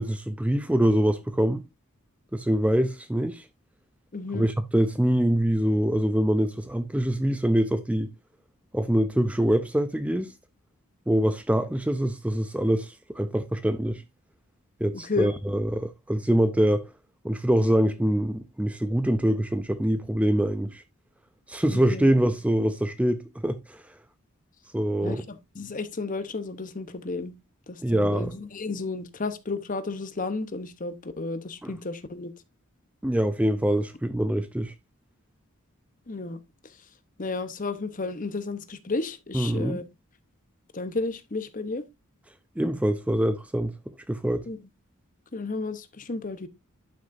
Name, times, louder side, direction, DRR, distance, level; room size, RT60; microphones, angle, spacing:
voice 1, 0.0-1.6 2.3-3.5 4.3-8.1 8.7-10.3 11.1-14.0 14.8-16.9 17.2-20.8 21.5-23.8 24.7-25.2 27.8-28.3 31.6-31.7 33.0-34.7 39.3-39.8 42.6-43.7 44.1-44.5, right 1 dB, 5° right, 0.4 m, -24 dB
voice 2, 4.1-4.5 14.9-15.3 21.7-22.1 25.0-27.3 27.7-32.3 36.1-36.4 37.2-39.8 40.7-41.9 44.5-44.6 45.3-46.5, left 3 dB, 40° left, 0.9 m, -32 dB
11.5 x 6.2 x 2.6 m
head